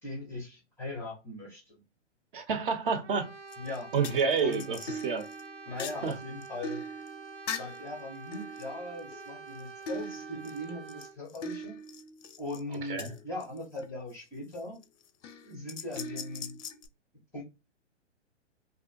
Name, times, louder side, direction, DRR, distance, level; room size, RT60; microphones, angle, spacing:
voice 1, 0.0-1.8 3.6-3.9 4.4-4.7 5.7-6.8 7.5-11.8 12.4-14.8 15.4-16.6 17.3-17.4, left 2 dB, 5° left, 0.4 m, -40 dB
voice 2, 2.3-3.3 3.9-5.3 6.0-6.2 12.9-13.1, right 5 dB, 50° right, 0.6 m, -29 dB
Brass instrument, 3.0-11.2, right 5 dB, 80° right, 0.7 m, -47 dB
sound 1, 3.5-3.8 4.0-7.9 8.3-9.6 9.9-13.9 14.5-14.8 15.2-16.9, left 2 dB, 90° left, 0.5 m, -41 dB
2.5 x 2.3 x 2.4 m
hypercardioid pair, 130°, 36 cm